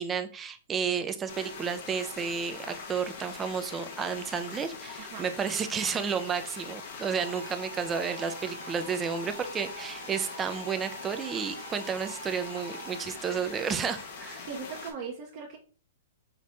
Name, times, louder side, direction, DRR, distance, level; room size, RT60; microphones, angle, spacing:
voice 1, 0.0-14.5, right 6 dB, 20° right, 8 dB, 0.5 m, -32 dB
sound 1, 1.3-14.9, left 5 dB, 60° left, 1.0 m, -42 dB
sound 2, 7.0-13.3, right 4 dB, 80° right, 0.5 m, -46 dB
voice 2, 14.5-15.6, right 5 dB, 45° right, -1 dB, 0.8 m, -39 dB
5.2 x 3.2 x 2.6 m, 0.38 s
hypercardioid pair, 135°, 0 cm